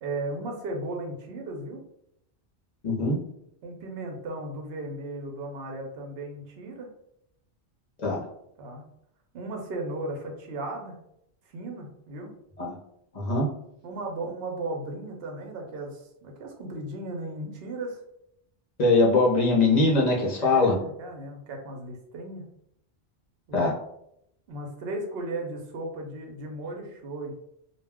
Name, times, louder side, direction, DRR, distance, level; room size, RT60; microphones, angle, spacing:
voice 1, 0.0-1.8 3.6-6.9 8.6-8.9 9.3-11.0 11.5-12.3 13.8-18.0 20.4-22.5 23.5-23.7 24.5-27.4, right 2 dB, 65° right, 2 dB, 0.8 m, -36 dB
voice 2, 2.8-3.2 8.0-8.2 12.6-12.7 13.1-13.5 18.8-20.8 23.5-23.7, left 3 dB, 45° left, -3 dB, 0.6 m, -22 dB
2.2 x 2.2 x 3.5 m, 0.76 s
omnidirectional pair, 1.1 m